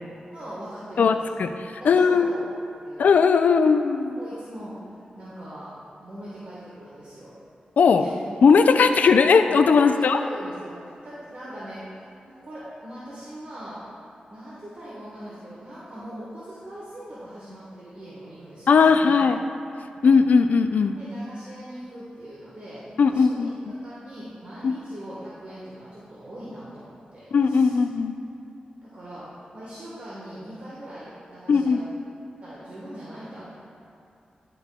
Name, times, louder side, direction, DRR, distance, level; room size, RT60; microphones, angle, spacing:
voice 1, 0.3-1.2 1.8-2.4 2.8-3.0 4.2-4.8 5.1-7.3 7.9-8.2 8.7-8.9 9.7-13.8 14.3-19.2 21.0-27.8 28.8-31.9 32.4-33.5, right 1 dB, 55° right, -8 dB, 1.2 m, -41 dB
voice 2, 1.0-2.3 3.0-4.2 7.8-8.0 8.4-10.2 18.7-19.4 20.0-21.0 23.0-23.5 24.6-24.7 27.3-28.1 31.5-31.8, left 5 dB, 75° left, 8 dB, 0.3 m, -18 dB
10.5 x 4.9 x 2.2 m, 2.7 s
wide cardioid pair, 85°, 3 cm